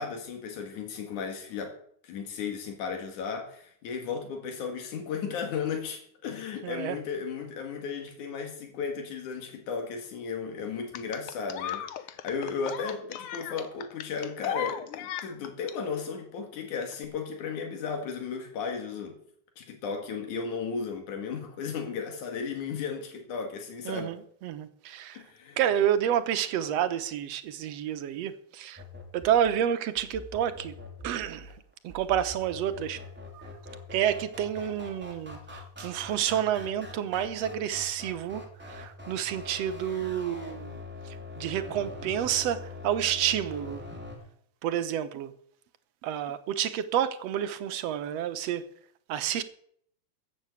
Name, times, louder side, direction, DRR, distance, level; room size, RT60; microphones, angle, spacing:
voice 1, 0.0-1.7 2.0-19.1 19.6-24.2 25.1-25.6, left 5 dB, 85° left, 3.3 m, -35 dB
voice 2, 6.6-7.0 23.9-25.2 25.6-28.8 29.1-30.8 31.0-31.5 31.8-33.0 33.3-33.5 33.9-40.8 41.1-43.8 44.6-45.3 46.0-48.6 49.1-49.4, right 10 dB, 65° right, 1.9 m, -29 dB
sound 1, 10.9-15.7 16.9-17.0, left 10 dB, 70° left, 1.4 m, -36 dB
sound 2, 28.8-44.2, left 2 dB, 5° right, 2.6 m, -44 dB
14.0 x 7.7 x 8.3 m
omnidirectional pair, 3.4 m